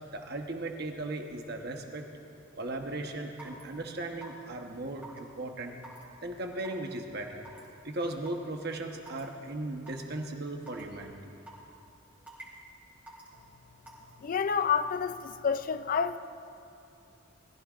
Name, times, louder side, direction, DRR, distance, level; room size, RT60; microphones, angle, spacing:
voice 1, 0.1-2.1 2.6-5.8 6.2-7.5 7.8-11.3, right 2 dB, 50° right, 1.1 m, -37 dB
Raindrop / Water tap faucet / Drip, 3.4-3.6 4.2-4.5 5.0-5.2 5.8-6.0 6.6-6.9 7.5-7.7 8.3-8.4 9.1-9.2 9.9-10.0 10.7-10.8 11.5-11.7 12.3-12.6 13.1-13.3 13.9-14.1, right 2 dB, 10° right, 2.9 m, -47 dB
voice 2, 14.2-16.2, left 6 dB, 45° left, 0.4 m, -29 dB
20.5 x 15.0 x 2.5 m
head